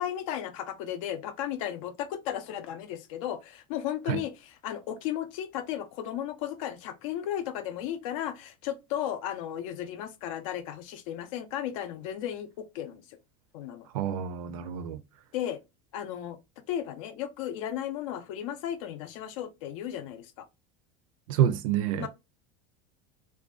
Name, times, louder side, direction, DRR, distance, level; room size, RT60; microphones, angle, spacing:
voice 1, 0.0-13.2 13.5-13.9 15.3-15.6 15.9-16.4 16.7-20.5 22.0-22.1, left 11 dB, 75° left, 0.5 m, -35 dB
voice 2, 13.9-15.0 21.3-22.1, right 10 dB, 85° right, 0.4 m, -27 dB
2.5 x 2.2 x 2.3 m
supercardioid pair, 140°, 17 cm